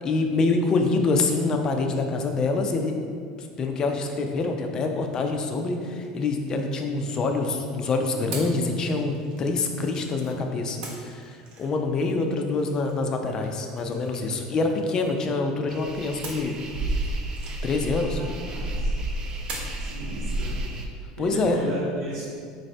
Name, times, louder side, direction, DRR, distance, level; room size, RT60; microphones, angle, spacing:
voice 1, 0.0-2.9 3.4-16.6 17.6-18.2 21.2-21.6, left 3 dB, 35° left, 4 dB, 0.4 m, -26 dB
sound 1, 6.0-7.4 8.3-10.4 10.8-15.5 16.2-18.7 19.5-19.9, right 2 dB, 50° right, 0.9 m, -44 dB
sound 2, 15.7-20.9, right 1 dB, 35° right, 0.4 m, -31 dB
voice 2, 18.2-18.9 19.8-20.6 20.9-22.2, right 1 dB, 85° right, -8 dB, 0.9 m, -35 dB
4.0 x 2.7 x 3.2 m, 2.2 s
supercardioid pair, 110°, 2 cm